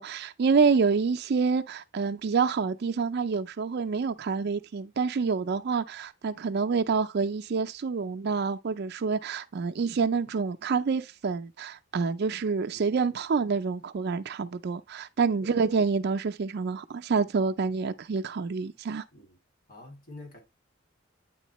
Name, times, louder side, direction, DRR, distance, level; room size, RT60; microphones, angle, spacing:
voice 1, 0.0-19.0, right 5 dB, 55° right, 0.4 m, -27 dB
voice 2, 19.7-20.4, left 2 dB, 45° left, 2.6 m, -46 dB
9.2 x 3.7 x 3.0 m
head